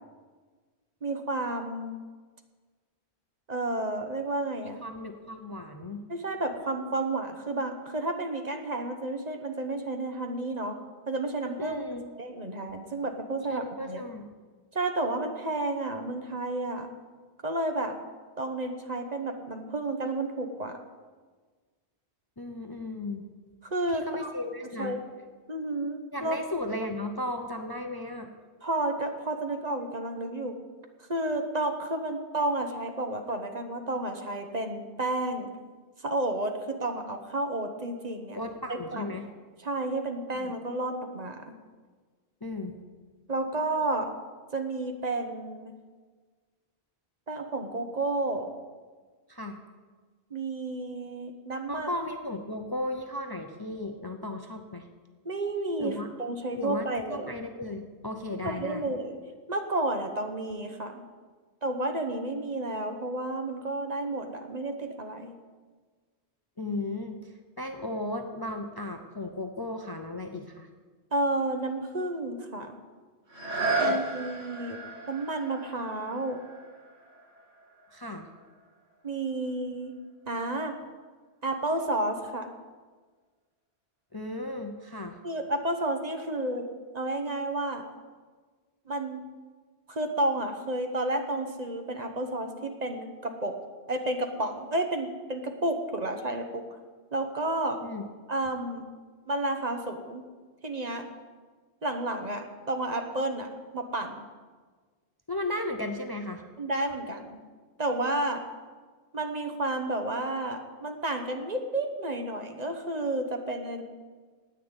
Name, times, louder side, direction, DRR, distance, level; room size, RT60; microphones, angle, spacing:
voice 1, 1.0-2.0 3.5-4.8 6.1-10.8 11.1-11.8 12.1-14.0 14.7-16.9 17.4-17.9 18.4-20.8 23.6-24.3 24.8-25.0 25.5-26.4 28.6-30.5 31.0-35.5 36.0-38.4 38.7-39.2 39.6-41.5 43.3-44.1 44.5-45.7 47.3-48.5 50.3-51.9 55.2-57.3 58.4-59.2 59.5-61.0 61.6-65.4 71.1-72.8 73.8-74.8 75.1-76.4 79.0-79.9 80.3-80.7 81.4-82.5 85.2-86.7 86.9-87.9 88.9-89.2 89.9-93.5 93.9-96.6 97.1-97.8 98.3-98.8 99.3-100.2 100.6-101.1 101.8-104.2 106.6-107.4 107.8-108.4 109.1-113.8, right 2 dB, 40° right, 5 dB, 1.1 m, -31 dB
voice 2, 4.6-6.1 11.6-12.1 13.5-14.3 22.4-23.2 23.9-25.0 26.1-28.3 38.3-39.3 40.3-40.5 42.4-42.7 49.3-49.6 51.7-54.9 55.8-56.1 56.6-58.9 66.6-67.3 67.6-70.7 73.7-74.0 77.9-78.3 84.1-85.2 97.8-98.0 105.3-106.4, left 2 dB, 25° left, 6 dB, 0.7 m, -35 dB
sound 1, 73.3-78.9 79.5-79.6, right 2 dB, 90° right, 2.4 m, -34 dB
10.0 x 9.0 x 8.9 m, 1.5 s
omnidirectional pair, 1.1 m